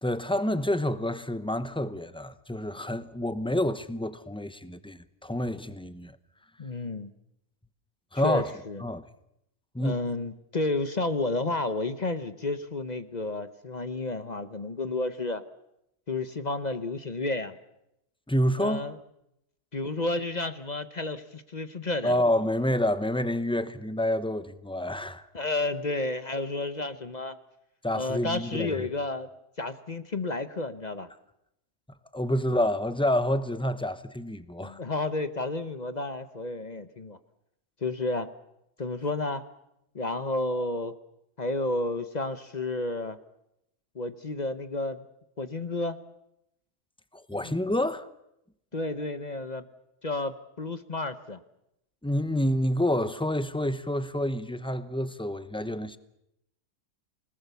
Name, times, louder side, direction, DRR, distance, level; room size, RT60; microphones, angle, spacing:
voice 1, 0.0-6.2 8.1-8.5 8.8-9.0 9.7-9.9 18.3-18.9 22.0-25.3 27.8-28.9 32.1-34.8 47.1-48.1 52.0-56.0, left 1 dB, 5° left, 0.6 m, -28 dB
voice 2, 6.6-7.1 8.2-8.8 9.8-15.4 16.1-17.6 18.6-18.9 19.7-22.2 25.3-27.4 27.9-29.3 29.6-31.1 34.6-37.2 37.8-38.3 38.8-39.4 39.9-41.0 41.4-43.2 43.9-45.0 45.4-46.0 47.4-47.5 48.7-49.7 50.0-51.4, left 2 dB, 35° left, 0.9 m, -31 dB
29.0 x 19.0 x 7.0 m
omnidirectional pair, 1.6 m